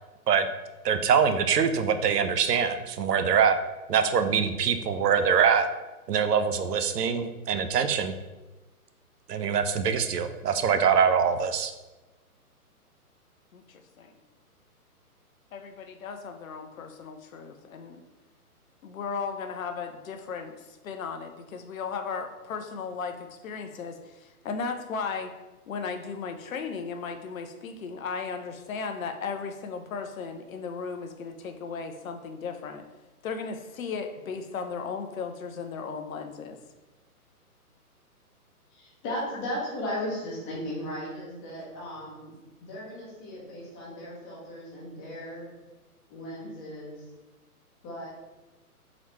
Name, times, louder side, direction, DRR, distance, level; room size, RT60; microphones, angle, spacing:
voice 1, 0.8-3.6 3.9-5.7 6.1-8.1 9.3-11.7, right 7 dB, 85° right, 8 dB, 0.6 m, -24 dB
voice 2, 13.5-14.1 15.5-18.0 18.8-25.3 25.7-32.8 33.2-36.6, left 5 dB, 60° left, 6 dB, 0.6 m, -36 dB
voice 3, 38.7-42.3 42.6-45.5 46.1-47.1 47.8-48.1, left 1 dB, 20° left, -6 dB, 1.2 m, -36 dB
3.9 x 3.1 x 3.0 m, 1.1 s
hypercardioid pair, 145°, 46 cm